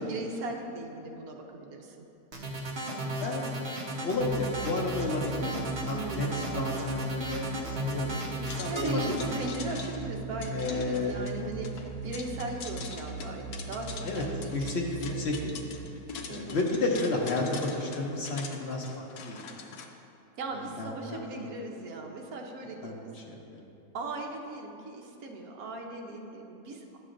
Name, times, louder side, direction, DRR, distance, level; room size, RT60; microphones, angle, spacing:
voice 1, 0.0-2.1 5.9-6.5 8.7-14.7 16.3-16.7 20.4-23.1 23.9-26.8, right 2 dB, 65° right, 1 dB, 1.2 m, -38 dB
sound 1, 2.3-9.4, right 1 dB, 45° right, 1.0 m, -34 dB
voice 2, 3.0-3.7 4.0-9.2 10.5-11.3 14.0-14.2 14.5-15.4 15.7-16.0 16.3-19.4 20.8-21.5 22.8-23.6, left 2 dB, 55° left, -1 dB, 0.7 m, -32 dB
sound 2, 4.1-17.4, right 4 dB, 15° left, 1.8 m, -40 dB
sound 3, 8.5-19.9, left 5 dB, 75° left, 1.1 m, -44 dB
11.0 x 7.4 x 2.5 m, 2.8 s
omnidirectional pair, 1.8 m